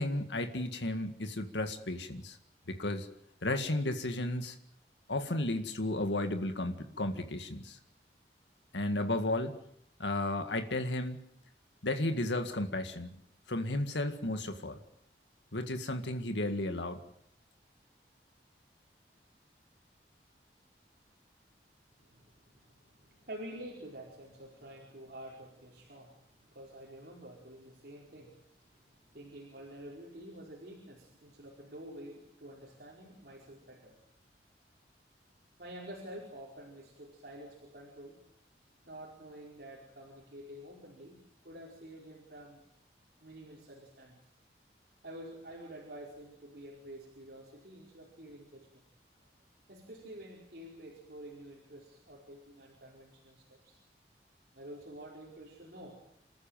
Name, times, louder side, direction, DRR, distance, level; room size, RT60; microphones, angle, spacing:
voice 1, 0.0-2.4 2.7-3.1 3.4-4.6 5.1-7.8 8.7-9.6 10.0-11.2 11.8-13.2 13.5-14.8 15.5-17.0, left 1 dB, 85° left, 7 dB, 2.0 m, -33 dB
voice 2, 22.0-34.0 35.6-38.2 38.8-42.6 43.2-44.2 45.0-48.8 49.2-49.3 49.7-53.8 54.5-56.0, right 1 dB, 60° right, -2 dB, 4.8 m, -49 dB
28.0 x 14.5 x 9.1 m, 0.72 s
head